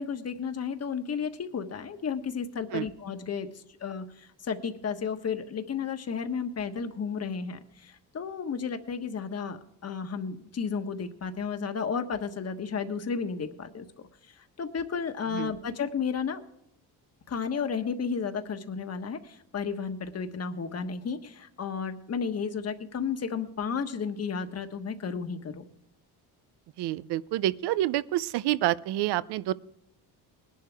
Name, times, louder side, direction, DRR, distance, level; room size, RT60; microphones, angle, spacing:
voice 1, 0.0-13.8 14.6-16.4 17.3-25.6, left 6 dB, 40° left, 7 dB, 1.3 m, -33 dB
voice 2, 26.8-29.5, right 14 dB, 75° right, 18 dB, 0.6 m, -28 dB
20.0 x 11.0 x 3.5 m, 0.79 s
cardioid pair, 110°, 40 cm